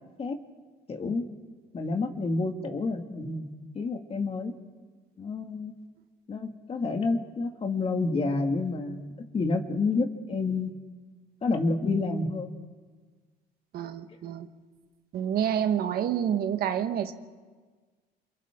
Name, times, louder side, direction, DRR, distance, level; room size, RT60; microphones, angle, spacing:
voice 1, 0.9-1.2 1.7-3.5 3.7-4.5 5.2-5.7 6.3-10.7 11.4-12.5, left 3 dB, 35° left, 4 dB, 2.3 m, -29 dB
voice 2, 13.7-14.5 15.1-17.1, right 9 dB, 65° right, 7 dB, 1.5 m, -28 dB
28.0 x 28.0 x 3.8 m, 1.4 s
cardioid pair, 110°, 17 cm